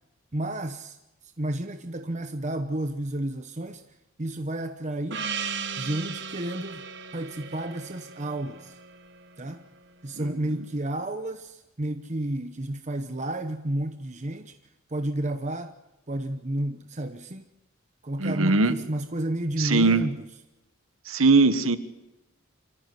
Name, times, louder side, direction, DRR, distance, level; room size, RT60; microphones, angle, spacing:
voice 1, 0.3-1.0 1.4-3.8 4.2-5.2 5.8-6.8 7.1-8.8 9.4-9.6 10.0-14.5 14.9-15.7 16.1-17.5 18.0-20.3, right 1 dB, 35° right, 8 dB, 1.0 m, -31 dB
Gong, 5.1-9.9, right 6 dB, 55° right, 1.4 m, -37 dB
voice 2, 10.2-10.6 18.2-18.8 19.6-20.0 21.1-21.8, right 3 dB, 85° right, 11 dB, 1.5 m, -21 dB
27.0 x 14.5 x 9.6 m, 0.99 s
head